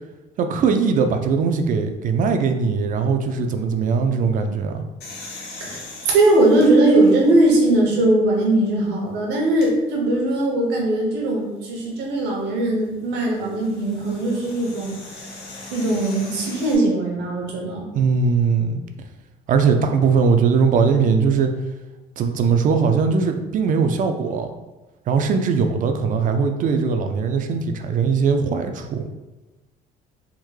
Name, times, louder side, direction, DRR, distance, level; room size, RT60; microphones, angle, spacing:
voice 1, 0.4-4.8 17.9-18.8 19.5-21.5 22.2-24.5 25.1-29.0, right 5 dB, 50° right, 6 dB, 0.4 m, -20 dB
sound 1, 5.0-7.9 8.5-8.6 9.4-9.7 11.9-16.7, left 2 dB, 75° left, 0.8 m, -40 dB
voice 2, 5.6-15.3 15.7-17.9, right 2 dB, 85° right, -1 dB, 0.9 m, -19 dB
3.5 x 2.1 x 3.1 m, 1.1 s
cardioid pair, 110°, 17 cm